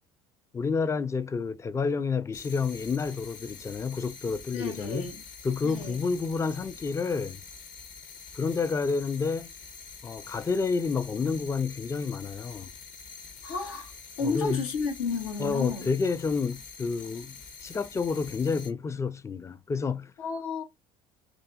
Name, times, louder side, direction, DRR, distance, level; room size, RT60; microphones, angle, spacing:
voice 1, 0.5-5.1 5.4-7.4 8.3-9.5 10.0-12.7 14.2-14.6 15.4-20.1, left 5 dB, 15° left, 0.3 m, -29 dB
sound 1, 2.3-18.7, left 5 dB, 45° left, 0.9 m, -46 dB
voice 2, 4.5-5.3 5.6-6.0 13.4-13.9 14.2-15.9 20.2-20.6, left 4 dB, 80° left, 0.9 m, -32 dB
2.7 x 2.5 x 2.4 m
hypercardioid pair, 70°, 18 cm